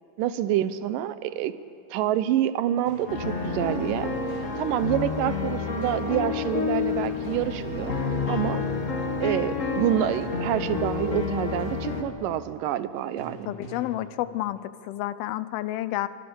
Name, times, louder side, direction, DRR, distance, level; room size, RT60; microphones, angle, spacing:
voice 1, 0.2-1.6 1.9-4.1 4.6-7.9 8.3-8.6 9.2-13.5, right 12 dB, 75° right, 13 dB, 2.4 m, -27 dB
sound 1, 2.9-3.3 4.3-4.8 5.8-6.2 7.2-8.1 9.8-10.6 11.6-12.2 13.2-14.1, left 1 dB, 65° left, 9.4 m, -44 dB
sound 2, 3.1-12.0, left 4 dB, 25° left, 1.8 m, -29 dB
voice 2, 13.5-16.1, left 14 dB, 85° left, 14 dB, 2.6 m, -30 dB
29.0 x 24.0 x 7.1 m, 2.6 s
omnidirectional pair, 4.2 m